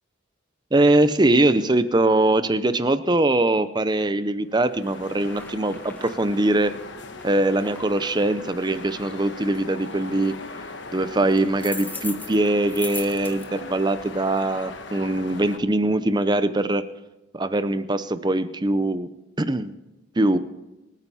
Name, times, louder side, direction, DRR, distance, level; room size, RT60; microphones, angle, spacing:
voice 1, 0.7-6.7 7.2-10.3 10.9-16.8 17.3-19.1 19.4-19.7 20.2-20.4, right 2 dB, 20° right, 12 dB, 0.6 m, -22 dB
sound 1, 4.5-15.6, left 3 dB, 60° left, 1.2 m, -39 dB
sound 2, 5.2-14.1, left 3 dB, 10° left, 1.3 m, -42 dB
24.5 x 9.1 x 4.3 m, 1.0 s
head